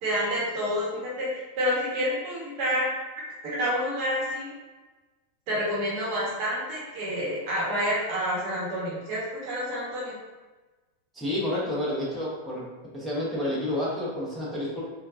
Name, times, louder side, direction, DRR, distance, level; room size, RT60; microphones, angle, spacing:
voice 1, 0.0-2.9 3.4-4.5 5.5-10.2, equal, 40° right, -5 dB, 1.1 m, -28 dB
voice 2, 11.1-12.7 12.9-14.8, left 1 dB, 5° right, -8 dB, 1.1 m, -29 dB
4.4 x 2.3 x 2.6 m, 1.2 s
figure-of-eight pair, 90°, 0 cm